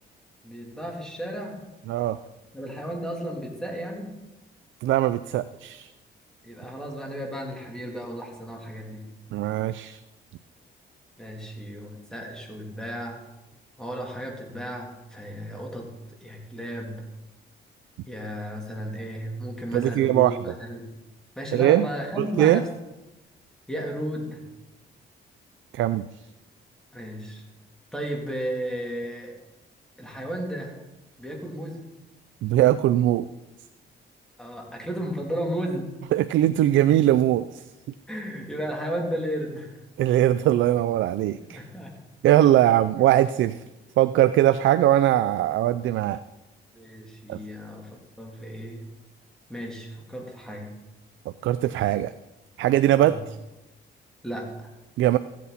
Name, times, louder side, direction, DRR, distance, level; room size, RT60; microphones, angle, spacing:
voice 1, 0.4-1.6 2.5-4.1 6.4-9.1 11.2-13.2 13.8-15.9 16.2-17.1 18.1-20.9 21.4-22.7 23.7-24.4 26.9-27.4 27.9-29.3 30.0-30.7 31.2-31.8 34.4-35.9 38.1-39.8 41.4-41.9 46.7-48.9 49.5-50.7 52.9-53.2 54.2-54.5, equal, 5° left, -1 dB, 3.1 m, -34 dB
voice 2, 1.9-2.2 4.8-5.9 9.3-10.0 19.7-20.4 21.5-21.9 22.2-22.6 25.7-26.0 32.4-33.3 36.1-37.6 40.0-41.6 42.2-43.6 44.0-46.2 47.3-47.4 51.4-52.1 52.6-53.4 55.0-55.2, right 13 dB, 75° right, 13 dB, 0.4 m, -21 dB
15.0 x 8.4 x 4.1 m, 1.0 s
cardioid pair, 90°, 20 cm